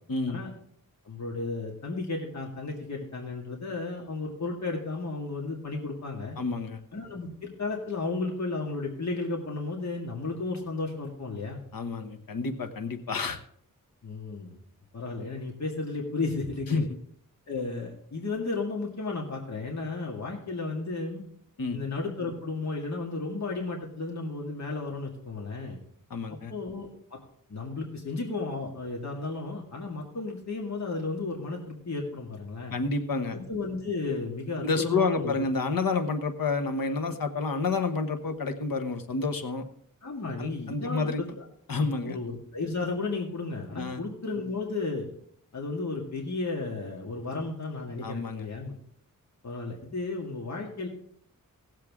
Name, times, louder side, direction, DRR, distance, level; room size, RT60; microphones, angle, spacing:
voice 1, 0.1-0.4 6.4-6.8 11.7-13.4 16.7-16.9 21.6-21.8 26.1-26.5 32.7-33.4 34.6-39.6 40.4-41.2 41.7-42.2 43.8-44.0 48.0-48.8, left 4 dB, 85° left, 7 dB, 1.2 m, -29 dB
voice 2, 1.0-6.4 6.9-11.6 14.0-14.6 14.9-16.9 17.5-21.2 21.7-25.8 26.3-27.2 27.5-32.8 33.3-35.4 40.0-41.4 42.0-45.1 45.5-48.7 49.4-50.9, left 3 dB, 55° left, -1 dB, 2.1 m, -33 dB
17.5 x 7.6 x 3.6 m, 0.63 s
wide cardioid pair, 75°, 34 cm